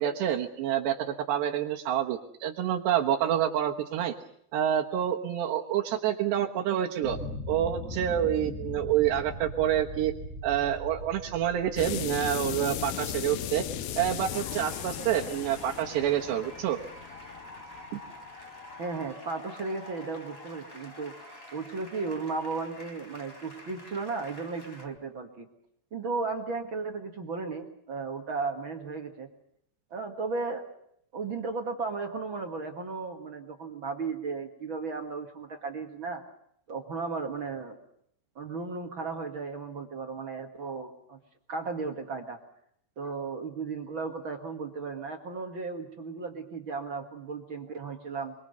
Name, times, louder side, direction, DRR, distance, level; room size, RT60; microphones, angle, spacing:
voice 1, 0.0-4.1 4.5-7.2 7.5-10.1 10.4-13.7 14.0-16.8 17.9-18.0, right 10 dB, 85° right, 0 dB, 3.5 m, -28 dB
sound 1, 7.0-12.8, left 1 dB, 45° left, 9.5 m, -40 dB
sound 2, 11.8-18.2, left 11 dB, 75° left, 2.8 m, -36 dB
sound 3, 14.3-24.9, left 1 dB, 15° left, 3.6 m, -47 dB
voice 2, 18.8-25.5 25.9-29.3 29.9-30.6 31.1-36.2 36.7-37.8 38.3-41.2 41.5-42.4 43.0-48.3, right 4 dB, 45° right, 4 dB, 1.7 m, -35 dB
25.0 x 23.0 x 6.8 m, 0.71 s
omnidirectional pair, 4.8 m